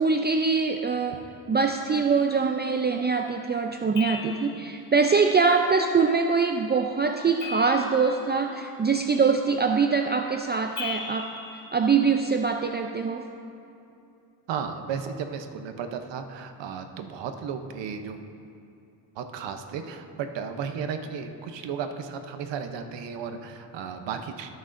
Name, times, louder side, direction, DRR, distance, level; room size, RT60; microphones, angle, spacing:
voice 1, 0.0-11.3 11.7-13.3, right 5 dB, 25° right, 4 dB, 0.4 m, -23 dB
sound 1, 3.9-4.8 7.4-8.4 10.8-12.4, left 5 dB, 45° left, 2.0 m, -38 dB
voice 2, 14.5-18.2 19.2-24.5, right 6 dB, 85° right, 7 dB, 0.8 m, -34 dB
17.5 x 6.2 x 2.6 m, 2.7 s
cardioid pair, 70°, 42 cm